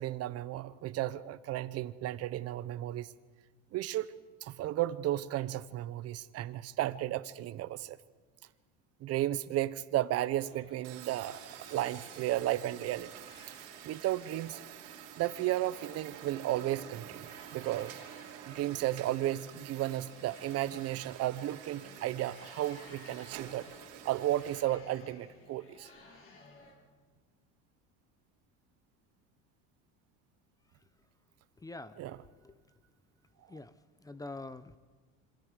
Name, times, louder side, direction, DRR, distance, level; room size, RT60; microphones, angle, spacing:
voice 1, 0.0-3.1 3.7-4.1 4.4-8.0 9.0-11.4 11.7-13.1 13.8-14.6 15.2-18.0 18.5-23.7 24.0-25.9 32.0-32.2, right 14 dB, 50° right, 15 dB, 1.0 m, -34 dB
Medium house party walla ambience chatter, 10.3-26.7, left 2 dB, 45° left, 7.4 m, -57 dB
sound 1, 10.8-24.6, right 11 dB, 80° right, 3.2 m, -49 dB
voice 2, 31.6-32.6 33.5-33.7 34.0-34.8, left 2 dB, 10° left, 14 dB, 0.7 m, -45 dB
27.0 x 26.0 x 5.0 m, 1.4 s
cardioid pair, 125°, 32 cm